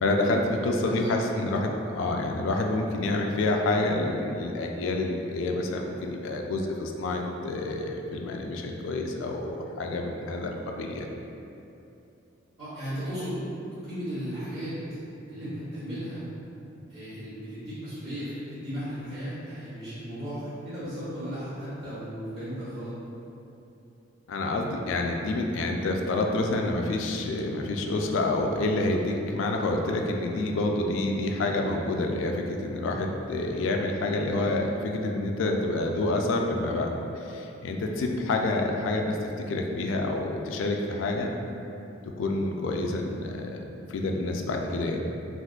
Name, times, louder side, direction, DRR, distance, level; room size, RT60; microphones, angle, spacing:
voice 1, 0.0-11.1 24.3-41.3 42.0-43.6 43.9-45.0, left 2 dB, 75° left, 2 dB, 0.3 m, -28 dB
voice 2, 0.8-1.4 12.6-13.4 13.8-15.0 15.3-16.2 16.9-22.9, equal, 60° right, -19 dB, 1.3 m, -36 dB
3.6 x 2.5 x 2.3 m, 2.8 s
head